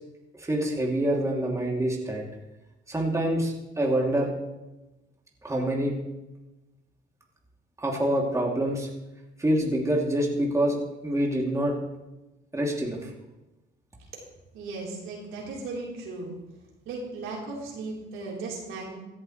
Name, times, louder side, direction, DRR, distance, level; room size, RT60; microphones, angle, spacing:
voice 1, 0.4-2.2 2.9-4.3 5.4-6.0 7.8-8.9 9.4-10.8 11.0-11.8 12.5-13.1, right 1 dB, 15° right, -1 dB, 2.7 m, -26 dB
voice 2, 14.5-16.4 16.9-19.0, right 3 dB, 80° right, -3 dB, 3.8 m, -36 dB
16.5 x 11.0 x 3.2 m, 1.0 s
cardioid pair, 80°, 21 cm